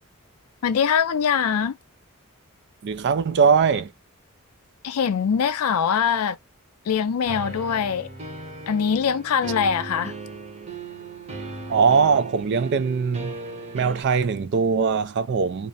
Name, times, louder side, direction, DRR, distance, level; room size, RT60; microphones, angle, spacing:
voice 1, 0.6-1.7 4.8-6.4 6.9-8.1 8.7-10.1, left 7 dB, 80° left, 0.4 m, -22 dB
voice 2, 2.8-3.9 11.7-13.3 13.7-15.7, right 5 dB, 50° right, 0.3 m, -21 dB
sound 1, 7.3-14.0, right 3 dB, 30° right, 0.8 m, -37 dB
2.4 x 2.0 x 2.6 m
head